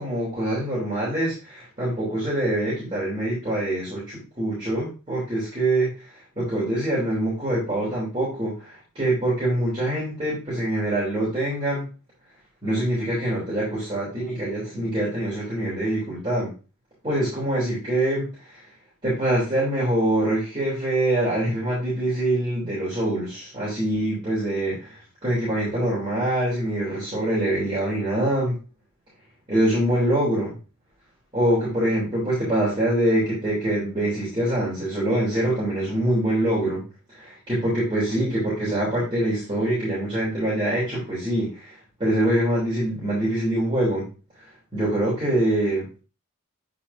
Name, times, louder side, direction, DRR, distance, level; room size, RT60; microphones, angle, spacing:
voice 1, 0.0-5.9 6.4-11.9 12.6-16.5 17.0-18.3 19.0-25.0 25.2-28.6 29.5-30.6 31.3-36.8 37.1-41.7 42.0-44.1 44.7-45.9, right 1 dB, 25° right, -9 dB, 3.6 m, -24 dB
8.6 x 5.1 x 2.8 m, 0.32 s
head